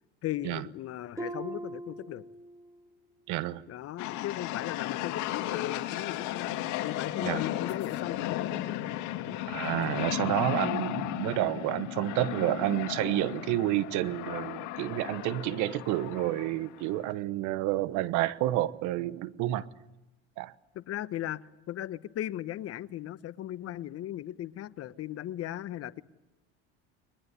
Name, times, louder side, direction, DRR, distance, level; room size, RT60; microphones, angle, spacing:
voice 1, 0.2-2.2 3.7-6.5 6.8-8.8 9.2-9.4 20.7-26.0, left 13 dB, 50° left, 15 dB, 1.1 m, -37 dB
Harp, 1.2-2.9 3.3-3.7 4.3-4.4, right 1 dB, 10° right, 2.0 m, -41 dB
voice 2, 3.3-3.6 7.2-7.4 9.5-19.7 20.4-20.5, right 15 dB, 70° right, 15 dB, 1.2 m, -30 dB
sound 1, 4.0-17.1, left 14 dB, 65° left, 2.5 m, -35 dB
22.0 x 21.0 x 9.9 m, 0.99 s
supercardioid pair, 90°, 31 cm